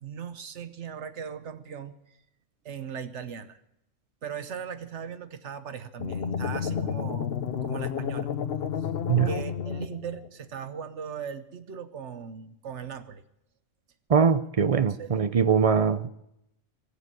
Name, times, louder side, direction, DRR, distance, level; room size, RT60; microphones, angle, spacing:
voice 1, 0.0-2.2 2.6-3.6 4.2-7.3 7.6-8.3 8.8-8.9 9.3-13.2 14.7-15.2, right 7 dB, 65° right, 12 dB, 1.2 m, -39 dB
sound 1, 6.0-10.3, left 7 dB, 55° left, 1.0 m, -31 dB
voice 2, 14.1-16.1, right 6 dB, 40° right, 12 dB, 0.5 m, -22 dB
20.5 x 7.0 x 9.7 m, 0.81 s
omnidirectional pair, 1.3 m